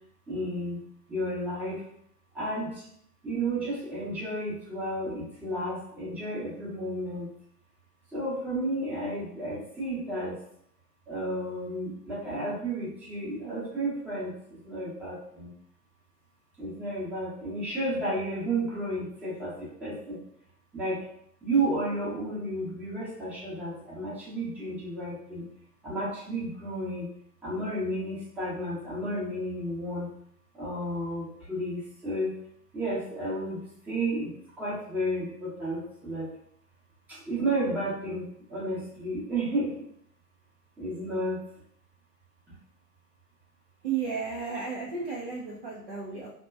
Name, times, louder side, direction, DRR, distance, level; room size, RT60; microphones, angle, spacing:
voice 1, 0.3-0.8 1.1-1.8 2.3-2.9 3.2-7.3 8.1-10.4 11.1-15.5 16.6-19.5 19.8-20.2 20.7-21.0 21.4-25.4 25.8-27.0 27.4-30.1 30.5-32.4 32.7-34.3 34.6-36.3 37.1-39.8 40.8-41.4, right 1 dB, 5° right, -10 dB, 0.7 m, -32 dB
voice 2, 43.8-46.3, right 5 dB, 40° right, -4 dB, 0.4 m, -33 dB
2.7 x 2.2 x 2.3 m, 0.68 s
figure-of-eight pair, 115°, 49 cm